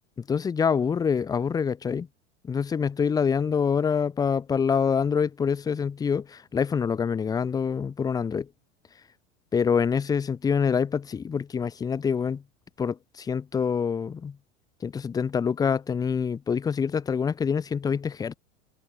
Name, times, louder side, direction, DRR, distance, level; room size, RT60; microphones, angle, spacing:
voice 1, 0.3-2.1 2.4-8.5 9.5-12.4 12.8-14.4 14.8-18.4, left 6 dB, 10° left, 0.5 m, -26 dB
figure-of-eight pair, 80°, 39 cm